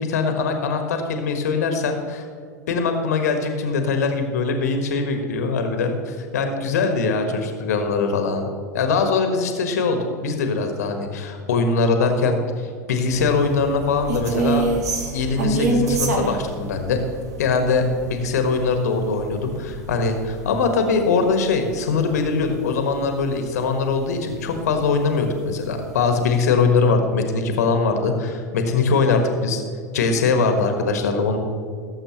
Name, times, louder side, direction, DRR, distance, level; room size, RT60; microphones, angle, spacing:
voice 1, 0.0-2.3 2.7-14.6 15.1-17.0 17.4-29.6 29.9-31.4, left 4 dB, 65° left, 5 dB, 1.4 m, -22 dB
sound 1, 13.1-23.5 23.8-24.0 24.4-25.2 25.6-25.7 26.0-26.4, right 2 dB, 65° right, 1.7 m, -27 dB
18.0 x 7.6 x 3.0 m, 2.2 s
figure-of-eight pair, 80°, 9 cm